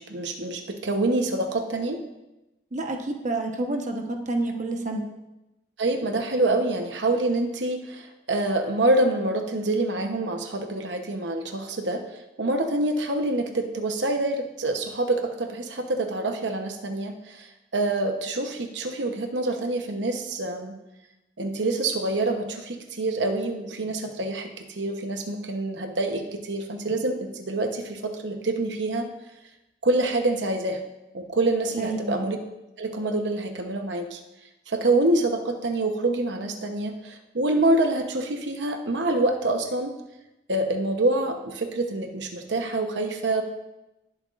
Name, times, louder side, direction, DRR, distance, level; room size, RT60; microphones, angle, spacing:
voice 1, 0.0-2.0 5.8-20.7 21.4-29.1 29.8-30.8 31.1-32.4 32.8-34.2 34.7-39.9 40.5-43.4, right 2 dB, 85° right, 5 dB, 0.9 m, -26 dB
voice 2, 2.7-5.0 31.8-32.2, right 2 dB, 45° right, 2 dB, 1.1 m, -29 dB
19.0 x 7.8 x 2.5 m, 0.97 s
head